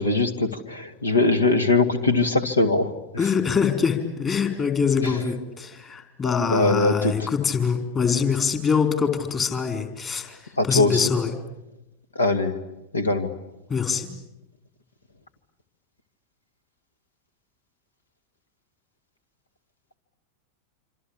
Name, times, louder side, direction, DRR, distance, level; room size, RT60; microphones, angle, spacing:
voice 1, 0.0-2.9 5.0-5.1 6.5-7.3 10.6-11.0 12.2-12.5 12.9-13.3, left 3 dB, 75° left, 11 dB, 2.2 m, -21 dB
voice 2, 3.2-11.3 13.7-14.1, left 6 dB, 25° left, 6 dB, 4.4 m, -24 dB
26.5 x 26.0 x 8.6 m, 0.94 s
figure-of-eight pair, 90°, 0 cm